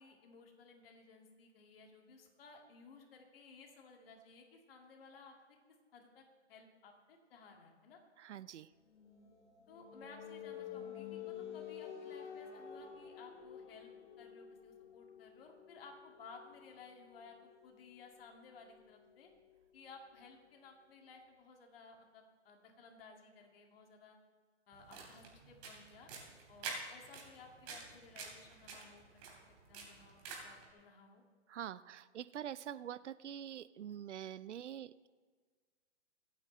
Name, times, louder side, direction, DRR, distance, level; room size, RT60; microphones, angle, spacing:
voice 1, 0.0-5.6 5.9-6.2 6.5-8.0 9.7-13.9 14.2-17.4 17.6-19.3 19.7-24.2 24.7-26.1 26.5-29.0 29.4-31.2, left 4 dB, 50° left, 2 dB, 2.3 m, -58 dB
voice 2, 8.2-8.7 30.5-30.6 31.5-35.1, right 10 dB, 70° right, 17 dB, 0.5 m, -45 dB
sound 1, 8.9-20.4, left 8 dB, 70° left, 1.8 m, -51 dB
sound 2, 24.7-30.7, right 4 dB, 35° right, 3.1 m, -49 dB
24.5 x 8.9 x 3.3 m, 1.5 s
hypercardioid pair, 135°, 36 cm